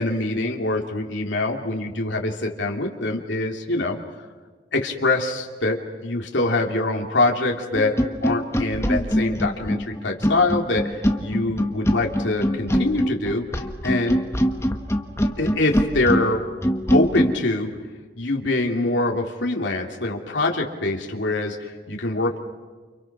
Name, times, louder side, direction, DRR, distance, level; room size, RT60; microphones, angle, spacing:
voice 1, 0.0-4.0 4.7-7.9 8.2-13.5 13.8-14.2 15.4-16.4 16.9-17.7 18.2-22.4, left 2 dB, 80° left, 1 dB, 3.0 m, -24 dB
sound 1, 7.7-17.3, equal, 15° left, 1.5 m, -23 dB
29.5 x 29.5 x 6.1 m, 1.4 s
head